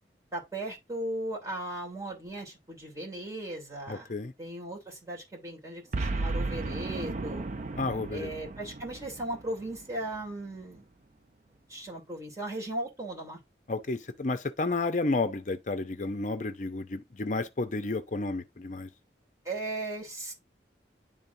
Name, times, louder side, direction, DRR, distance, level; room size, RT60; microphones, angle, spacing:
voice 1, 0.3-4.1 4.4-7.4 8.1-10.8 11.7-13.4 19.4-20.3, right 1 dB, 20° right, 2.9 m, -37 dB
voice 2, 3.9-4.3 7.8-8.3 13.7-18.9, left 3 dB, 45° left, 0.6 m, -31 dB
Boom, 5.9-10.3, right 3 dB, 45° right, 0.4 m, -35 dB
10.5 x 3.8 x 2.6 m
head